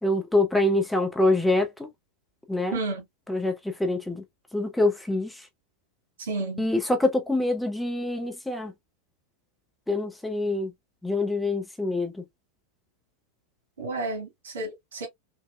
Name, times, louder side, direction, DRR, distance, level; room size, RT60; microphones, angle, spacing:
voice 1, 0.0-1.9 2.5-2.8 3.3-4.2 4.5-5.5 6.6-8.7 9.9-10.7 11.0-12.2, left 2 dB, 5° left, 0.8 m, -25 dB
voice 2, 2.7-3.0 6.2-6.7 13.8-15.1, right 2 dB, 65° right, 1.5 m, -31 dB
3.5 x 2.7 x 2.2 m
figure-of-eight pair, 90°, 0 cm